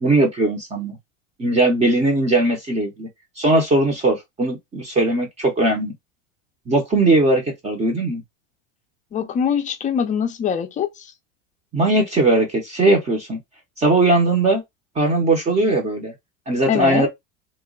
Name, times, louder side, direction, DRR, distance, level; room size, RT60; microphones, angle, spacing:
voice 1, 0.0-1.0 1.4-3.1 3.4-5.9 6.7-8.2 11.7-13.4 13.8-14.6 15.0-16.1 16.5-17.1, right 2 dB, 20° right, 0.7 m, -19 dB
voice 2, 9.1-10.9 16.7-17.1, left 7 dB, 20° left, 0.5 m, -22 dB
3.0 x 2.2 x 3.7 m
supercardioid pair, 140°, 35 cm